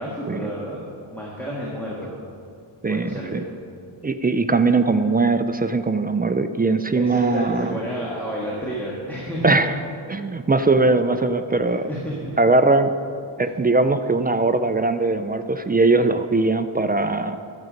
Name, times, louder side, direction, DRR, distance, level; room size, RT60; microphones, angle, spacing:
voice 1, 0.0-2.2 2.9-3.5 6.9-9.6 11.6-12.4 13.4-13.5, equal, 5° left, -6 dB, 1.6 m, -30 dB
voice 2, 2.8-3.4 4.0-7.8 9.4-9.7 10.1-11.9 12.4-12.9 13.4-17.4, right 3 dB, 20° right, 9 dB, 0.3 m, -20 dB
12.0 x 7.4 x 5.1 m, 2.4 s
wide cardioid pair, 125°, 48 cm